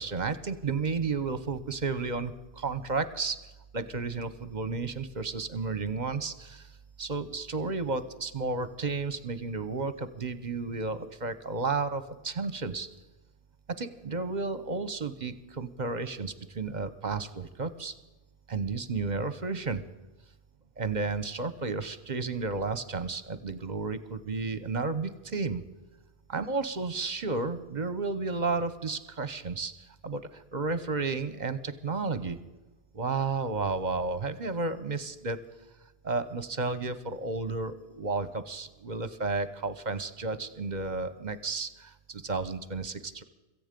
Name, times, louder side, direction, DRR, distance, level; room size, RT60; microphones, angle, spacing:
voice 1, 0.0-3.4 3.7-6.7 7.0-12.9 13.7-17.9 18.5-19.8 20.8-25.7 26.3-32.4 32.9-35.4 36.0-43.2, right 4 dB, 45° right, 13 dB, 1.0 m, -32 dB
17.0 x 15.0 x 5.2 m, 1.1 s
omnidirectional pair, 1.1 m